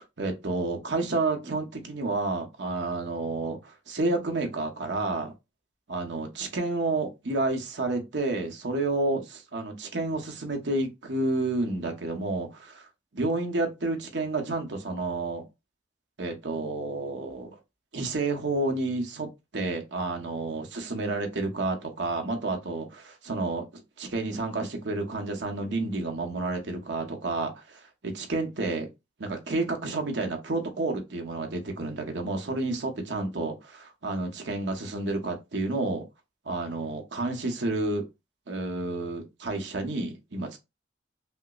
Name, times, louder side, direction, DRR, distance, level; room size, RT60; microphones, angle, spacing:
voice 1, 0.0-5.3 5.9-12.9 13.1-15.4 16.2-17.6 17.9-19.3 19.5-28.9 29.2-36.0 36.4-38.0 38.5-40.6, right 2 dB, 75° right, 0.9 m, -30 dB
5.4 x 2.0 x 2.3 m
head